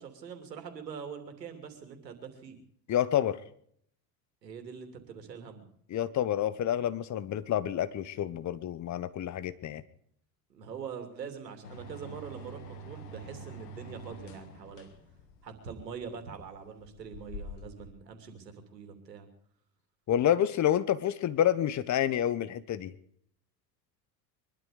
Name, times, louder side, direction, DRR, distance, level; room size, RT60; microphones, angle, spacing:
voice 1, 0.0-2.6 4.4-5.7 10.5-14.9 15.4-19.3, right 6 dB, 85° right, 7 dB, 3.1 m, -43 dB
voice 2, 2.9-3.4 5.9-9.8 20.1-22.9, left 10 dB, 35° left, 16 dB, 1.2 m, -28 dB
sound 1, 11.6-17.9, equal, 70° left, 2.6 m, -46 dB
23.0 x 12.5 x 5.0 m, 0.66 s
hypercardioid pair, 80°, 48 cm